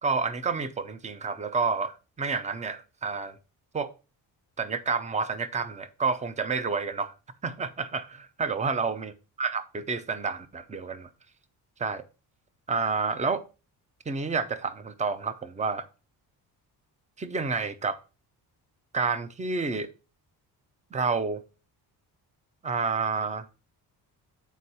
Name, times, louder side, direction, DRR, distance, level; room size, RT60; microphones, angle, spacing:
voice 1, 0.0-3.4 3.7-3.9 4.6-7.1 7.4-9.1 9.4-11.1 11.8-12.0 12.7-13.4 14.1-15.8 17.2-18.0 18.9-19.9 20.9-21.4 22.6-23.5, right 4 dB, 20° right, 0.7 m, -29 dB
8.3 x 4.6 x 4.2 m
cardioid pair, 140°, 39 cm